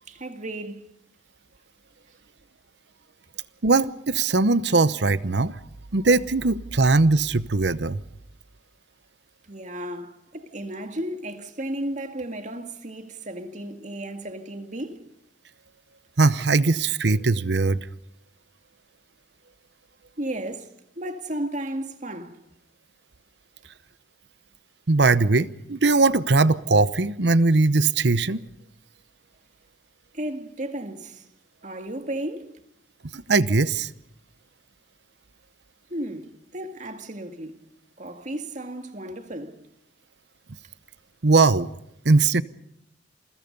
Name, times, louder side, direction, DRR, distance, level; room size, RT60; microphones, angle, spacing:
voice 1, 0.1-0.9 9.5-15.0 20.2-22.4 30.1-31.3 31.6-32.6 35.9-37.6 38.0-39.6, right 1 dB, 40° right, 2.1 m, -34 dB
voice 2, 3.6-5.5 5.9-8.0 16.2-17.8 24.9-28.4 33.1-33.9 41.2-41.7 42.0-42.4, right 3 dB, 65° right, 0.9 m, -20 dB
28.5 x 22.5 x 5.4 m
head